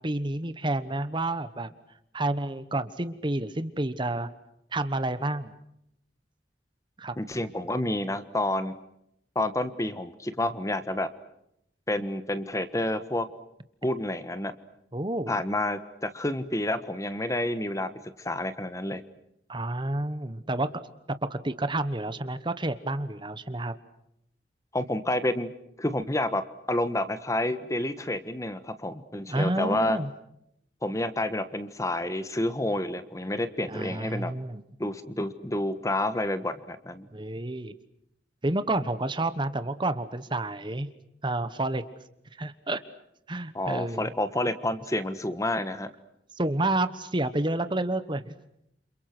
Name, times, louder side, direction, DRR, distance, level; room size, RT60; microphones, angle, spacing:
voice 1, 0.0-1.7 2.1-4.3 4.7-5.5 7.0-7.1 14.9-15.4 19.5-20.7 21.3-23.7 29.3-30.1 33.7-34.6 37.1-37.7 38.4-40.9 41.2-41.8 42.4-42.8 43.3-44.1 46.3-48.3, right 2 dB, 25° right, 12 dB, 1.2 m, -29 dB
voice 2, 7.2-8.7 9.3-11.1 11.9-13.3 13.8-14.5 15.3-17.9 18.2-19.0 24.7-25.5 25.8-26.4 26.7-30.0 30.8-34.3 34.8-37.0 43.5-45.9, left 1 dB, 20° left, 11 dB, 1.4 m, -29 dB
29.5 x 28.0 x 6.1 m, 0.77 s
head